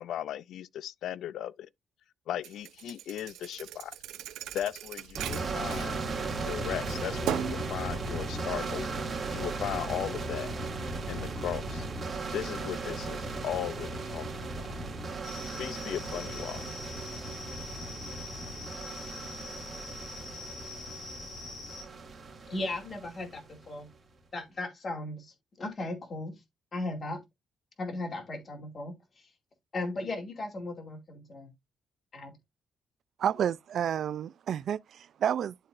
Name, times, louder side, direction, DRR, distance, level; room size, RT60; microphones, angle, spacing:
voice 1, 0.0-1.7 2.3-3.9 4.5-6.0 6.4-9.0 9.3-10.5 11.1-11.9 12.3-14.7 15.6-16.6, left 11 dB, 75° left, 0.3 m, -37 dB
Thump thud, 2.4-6.5 6.9-7.7, right 10 dB, 90° right, 0.9 m, -37 dB
sound 1, 5.2-23.8, right 3 dB, 35° right, 2.1 m, -36 dB
sound 2, 15.2-21.8, left 3 dB, 55° left, 2.8 m, -44 dB
voice 2, 22.5-23.9 24.3-26.3 26.7-27.2 27.8-29.3 29.7-31.5 32.1-32.3, left 2 dB, 40° left, 2.3 m, -37 dB
voice 3, 33.2-35.6, right 9 dB, 65° right, 0.3 m, -30 dB
11.0 x 3.9 x 2.5 m
cardioid pair, 90°, 0 cm